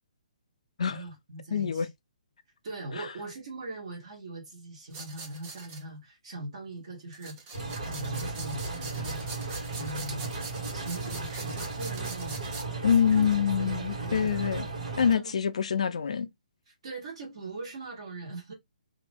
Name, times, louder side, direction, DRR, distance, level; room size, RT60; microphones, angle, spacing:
voice 1, 0.9-1.9 2.6-9.2 9.8-10.3 10.7-12.6 13.0-14.3 15.1-15.4 16.7-18.5, right 2 dB, 40° right, 1.6 m, -41 dB
voice 2, 1.5-1.9 3.0-3.1 12.8-14.7 15.0-16.3, left 7 dB, 55° left, 0.4 m, -25 dB
sound 1, 4.9-5.8 7.1-12.7, right 4 dB, 15° right, 0.4 m, -43 dB
sound 2, 7.5-15.1, right 3 dB, 60° right, 2.0 m, -35 dB
3.0 x 2.6 x 3.4 m
hypercardioid pair, 180°, 4 cm